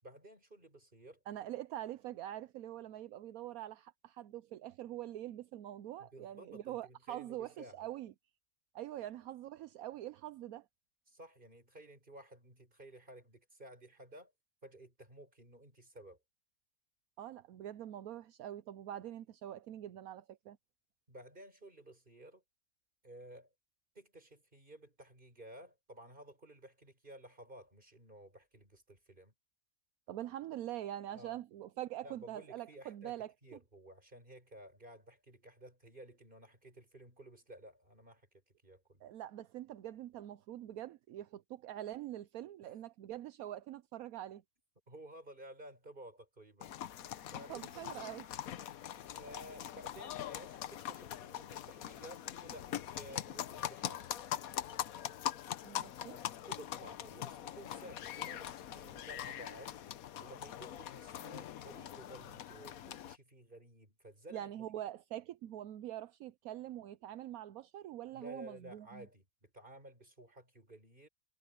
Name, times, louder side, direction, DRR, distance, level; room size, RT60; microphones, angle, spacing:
voice 1, 0.0-1.2 6.0-7.9 9.0-9.1 11.1-14.3 14.6-16.2 21.1-22.4 23.0-23.5 24.0-29.3 31.1-31.4 32.0-39.1 42.6-42.7 44.9-46.7 47.3-48.1 48.7-54.1 56.5-59.8 60.2-64.5 68.1-71.1, right 1 dB, 35° right, 5.6 m, -54 dB
voice 2, 1.3-8.1 8.7-10.7 17.2-20.6 30.1-33.3 39.0-44.4 47.5-48.3 55.6-56.2 64.3-69.1, right 12 dB, 75° right, 1.1 m, -44 dB
sound 1, 46.6-63.2, left 11 dB, 70° left, 1.2 m, -43 dB
omnidirectional pair, 1.6 m